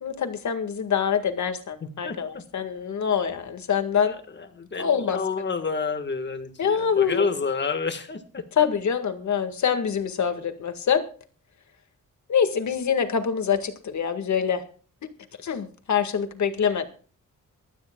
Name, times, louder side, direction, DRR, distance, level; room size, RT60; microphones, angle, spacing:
voice 1, 0.0-4.1 4.7-5.2 6.6-7.3 8.6-11.0 12.3-14.6 15.4-16.9, left 7 dB, 60° left, 7 dB, 1.9 m, -25 dB
voice 2, 1.8-2.4 4.0-8.4, left 4 dB, 35° left, 8 dB, 1.6 m, -30 dB
23.5 x 13.0 x 2.3 m, 0.40 s
wide cardioid pair, 175°, 32 cm